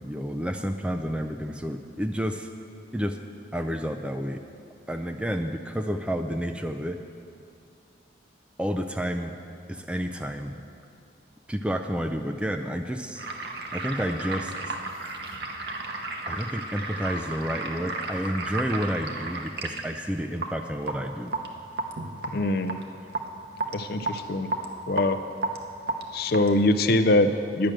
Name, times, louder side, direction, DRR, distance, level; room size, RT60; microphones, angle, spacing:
voice 1, 0.0-2.5 2.9-3.2 3.5-4.4 4.9-7.0 8.6-9.4 9.7-10.6 11.5-13.2 13.7-14.5 16.3-21.3, equal, 5° right, 5 dB, 0.3 m, -30 dB
sound 1, 13.2-26.8, right 2 dB, 55° right, 0.8 m, -33 dB
voice 2, 22.3-22.8 23.7-24.5 24.9-25.2 26.1-27.7, left 2 dB, 55° left, 10 dB, 0.5 m, -23 dB
10.5 x 6.2 x 8.8 m, 2.4 s
head